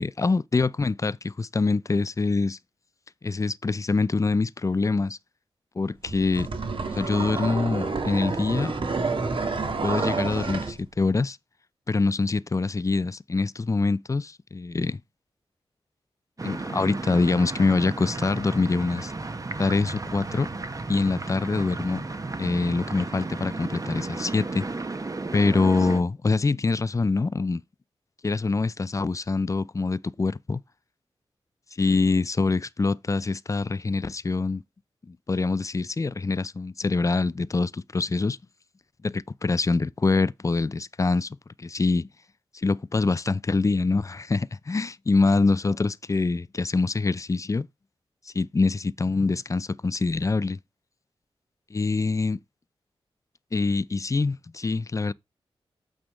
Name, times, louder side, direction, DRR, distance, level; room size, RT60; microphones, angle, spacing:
voice 1, 0.0-2.6 3.2-5.2 5.8-6.5 6.9-8.7 9.8-11.4 11.9-15.0 16.4-19.1 19.6-20.5 20.9-22.0 22.4-24.6 25.3-27.6 28.2-30.6 31.8-34.6 35.1-38.4 39.0-42.1 42.5-47.7 48.3-50.6 51.7-52.4 53.5-55.1, left 3 dB, 30° left, 0.5 m, -25 dB
sound 1, 6.1-10.8, right 4 dB, 60° right, 1.6 m, -29 dB
sound 2, 16.4-26.0, right 3 dB, 35° right, 1.0 m, -34 dB
8.8 x 3.5 x 6.4 m
cardioid pair, 60°, 10 cm